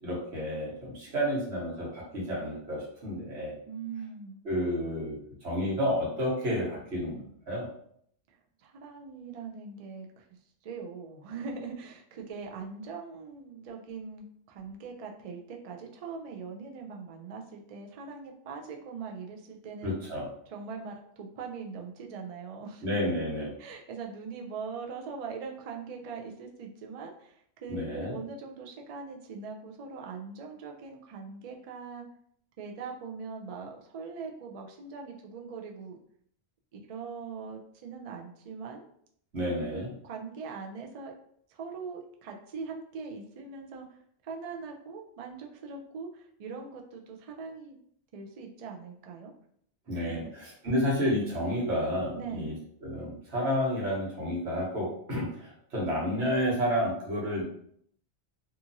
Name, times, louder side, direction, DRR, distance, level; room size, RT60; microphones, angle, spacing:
voice 1, 0.0-3.5 4.4-7.7 19.8-20.3 22.8-23.5 27.7-28.1 39.3-39.9 49.9-52.5 52.8-55.4 55.7-57.4, equal, 85° right, -5 dB, 1.3 m, -30 dB
voice 2, 3.7-4.4 8.3-10.3 10.6-20.0 20.5-22.9 23.6-32.1 32.6-36.0 36.9-38.9 39.5-41.1 41.5-47.8 48.1-49.3 49.9-50.3 52.2-52.6, right 5 dB, 55° right, 1 dB, 0.4 m, -41 dB
2.8 x 2.4 x 2.6 m, 0.66 s
omnidirectional pair, 1.1 m